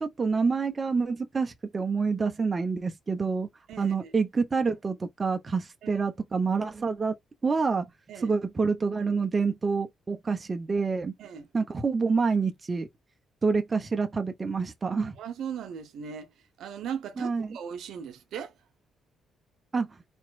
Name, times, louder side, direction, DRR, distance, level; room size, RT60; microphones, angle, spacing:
voice 1, 0.0-3.5 3.8-7.1 7.4-7.9 8.2-11.1 11.5-12.9 13.4-15.2 17.2-17.6 19.7-19.9, right 4 dB, 30° right, 0.8 m, -27 dB
voice 2, 3.7-4.1 5.8-6.0 8.1-8.3 11.2-11.5 15.2-16.3 16.6-18.5, right 7 dB, 75° right, 0.9 m, -38 dB
4.3 x 3.0 x 2.3 m
cardioid pair, 90°, 0 cm